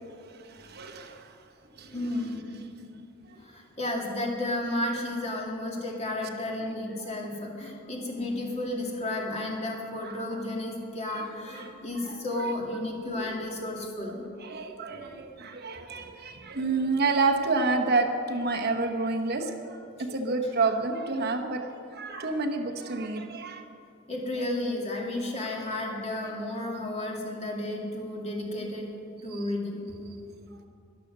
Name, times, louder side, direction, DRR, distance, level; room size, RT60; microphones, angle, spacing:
voice 1, 0.3-1.3 1.8-2.0 6.6-7.0 10.0-10.4 11.1-11.2 11.5-11.7 12.0-12.2 13.2-13.3 13.8-23.6 25.4-25.5 26.2-26.3 30.5-30.6, right 3 dB, 50° right, 4 dB, 1.0 m, -30 dB
voice 2, 1.9-2.6 3.4-14.2 20.0-20.1 20.4-20.5 24.1-28.9 29.2-30.1, left 1 dB, 30° left, -1 dB, 2.3 m, -33 dB
13.5 x 11.5 x 6.7 m, 2.5 s
head